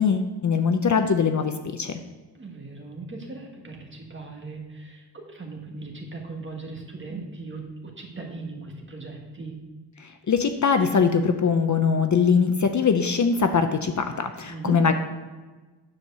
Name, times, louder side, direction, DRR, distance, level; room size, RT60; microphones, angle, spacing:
voice 1, 0.0-2.0 10.0-14.9, left 5 dB, 45° left, 7 dB, 0.6 m, -22 dB
voice 2, 2.3-9.6 14.5-14.8, right 3 dB, 30° right, 1 dB, 1.5 m, -38 dB
9.9 x 4.6 x 6.7 m, 1.3 s
wide cardioid pair, 175°, 41 cm